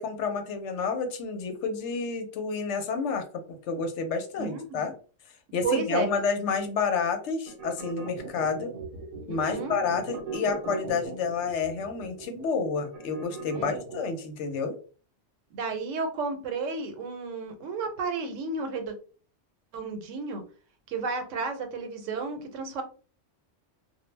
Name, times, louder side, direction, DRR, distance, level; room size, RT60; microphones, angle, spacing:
voice 1, 0.0-3.2 3.7-4.9 5.5-8.7 9.3-14.7, left 5 dB, 75° left, 6 dB, 0.9 m, -29 dB
voice 2, 4.4-4.8 5.6-6.1 9.3-9.7 13.5-13.7 15.5-18.9 19.7-20.4 20.9-22.8, right 4 dB, 85° right, 6 dB, 1.0 m, -32 dB
sound 1, 7.5-14.2, right 5 dB, 55° right, 0.7 m, -39 dB
2.2 x 2.0 x 3.1 m, 0.38 s
omnidirectional pair, 1.3 m